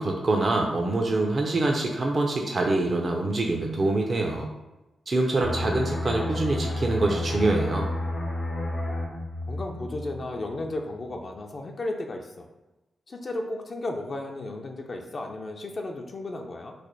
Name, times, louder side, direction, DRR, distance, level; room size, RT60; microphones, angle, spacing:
voice 1, 0.0-4.5 5.1-7.9, right 2 dB, 50° right, 1 dB, 0.4 m, -25 dB
sound 1, 5.4-10.8 11.1-11.4, left 1 dB, 85° left, 0.8 m, -31 dB
voice 2, 6.1-6.4 9.5-12.5 13.1-16.7, left 2 dB, 50° left, 2 dB, 0.4 m, -34 dB
3.2 x 2.1 x 3.8 m, 1.0 s
cardioid pair, 55°, 0 cm